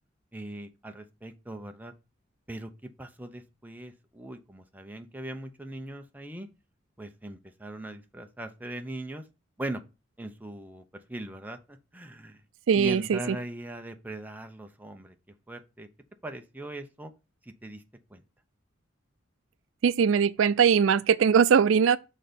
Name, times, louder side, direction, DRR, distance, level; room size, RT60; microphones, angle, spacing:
voice 1, 0.3-1.9 2.5-2.7 3.0-6.5 7.0-9.2 9.6-9.8 10.2-12.4 12.7-15.1 15.5-15.9 16.2-17.1 17.6-17.8 18.1-18.2, right 1 dB, 10° right, 0.7 m, -40 dB
voice 2, 12.7-13.4 19.8-22.0, right 7 dB, 85° right, 0.4 m, -21 dB
6.6 x 3.9 x 5.1 m
head